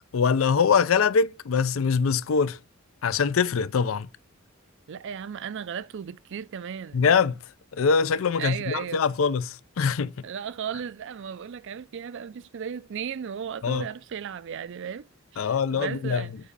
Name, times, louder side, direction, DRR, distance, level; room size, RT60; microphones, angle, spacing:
voice 1, 0.1-2.6 3.0-4.1 6.9-7.4 7.7-10.1 13.6-13.8 15.4-16.3, left 6 dB, 70° left, 0.5 m, -23 dB
voice 2, 4.9-7.1 8.4-9.1 10.2-15.1 15.3-16.3, right 7 dB, 60° right, 0.4 m, -35 dB
7.5 x 4.9 x 6.7 m
head